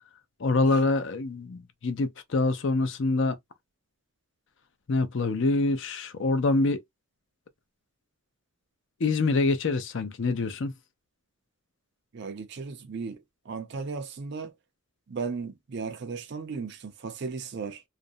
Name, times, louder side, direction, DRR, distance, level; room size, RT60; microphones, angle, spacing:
voice 1, 0.4-3.4 4.9-6.8 9.0-10.7, left 3 dB, 55° left, 0.5 m, -25 dB
voice 2, 12.1-14.5 15.1-17.8, right 4 dB, 50° right, 0.5 m, -36 dB
2.4 x 2.0 x 2.6 m
head